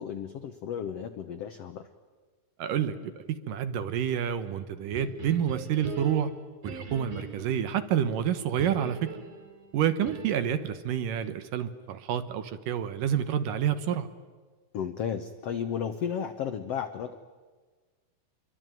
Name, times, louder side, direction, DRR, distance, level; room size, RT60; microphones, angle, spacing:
voice 1, 0.0-1.9 14.7-17.2, left 8 dB, 80° left, 9 dB, 1.4 m, -33 dB
voice 2, 2.6-6.3 6.6-9.1 9.7-14.1, right 9 dB, 70° right, 11 dB, 2.6 m, -28 dB
sound 1, 4.9-7.7 8.6-10.6, right 5 dB, 45° right, 4.2 m, -41 dB
27.5 x 23.0 x 9.2 m, 1.4 s
omnidirectional pair, 4.3 m